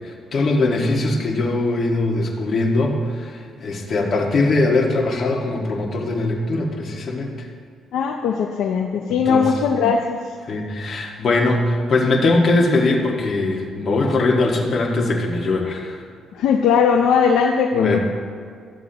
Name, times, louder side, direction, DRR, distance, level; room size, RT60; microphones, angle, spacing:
voice 1, 0.3-3.3 3.6-7.3 9.2-9.5 10.5-15.9 17.7-18.0, left 2 dB, 50° left, -1 dB, 1.7 m, -20 dB
voice 2, 7.9-10.2 16.3-18.0, left 6 dB, 85° left, 3 dB, 0.5 m, -19 dB
14.5 x 7.2 x 2.9 m, 2.1 s
cardioid pair, 90°, 0 cm